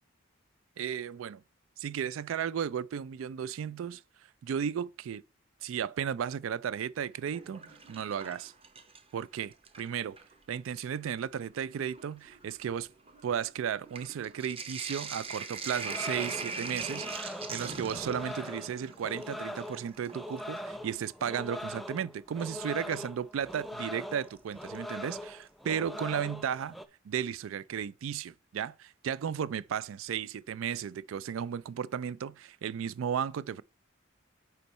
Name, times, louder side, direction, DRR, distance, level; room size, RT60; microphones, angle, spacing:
voice 1, 0.8-1.4 1.8-4.0 4.4-5.2 5.6-8.5 9.1-10.2 10.5-12.9 13.2-26.8 27.0-33.6, right 8 dB, 80° right, 0.3 m, -34 dB
Sink (filling or washing), 7.1-9.2 9.5-10.3 11.1-11.2 11.5-20.6 22.4-22.5 24.3-24.8 25.1-25.2 25.4-25.5, right 4 dB, 30° right, 0.8 m, -41 dB
sound 1, 15.9-26.8, left 1 dB, ahead, 0.4 m, -41 dB
8.2 x 4.5 x 4.2 m
head